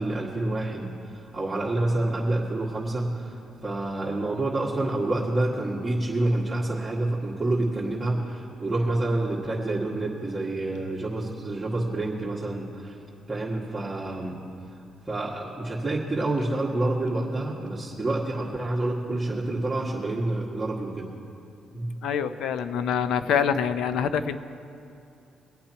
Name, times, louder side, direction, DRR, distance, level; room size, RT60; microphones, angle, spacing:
voice 1, 0.0-12.9 13.3-14.4 15.1-21.1 21.7-21.9, right 2 dB, 15° right, -8 dB, 2.0 m, -28 dB
voice 2, 22.0-24.4, left 7 dB, 80° left, 11 dB, 0.7 m, -25 dB
23.0 x 8.4 x 4.5 m, 2.7 s
cardioid pair, 90°, 0 cm